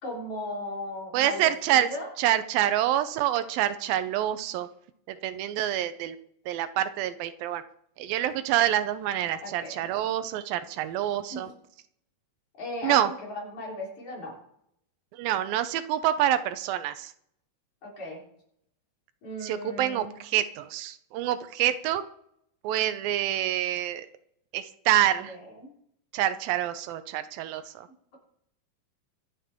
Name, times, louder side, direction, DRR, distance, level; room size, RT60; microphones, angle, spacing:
voice 1, 0.0-2.1 9.4-9.9 11.3-11.4 12.6-14.3 17.8-18.2 19.2-20.1 25.3-25.7, left 1 dB, 55° left, -3 dB, 5.2 m, -37 dB
voice 2, 1.1-1.9 2.2-4.7 5.2-6.2 6.5-7.6 8.0-11.5 12.8-13.1 15.1-17.1 19.4-22.0 22.6-24.1 24.5-25.4 26.1-27.9, right 12 dB, 90° right, 12 dB, 2.6 m, -27 dB
24.5 x 8.5 x 3.7 m, 0.72 s
omnidirectional pair, 4.0 m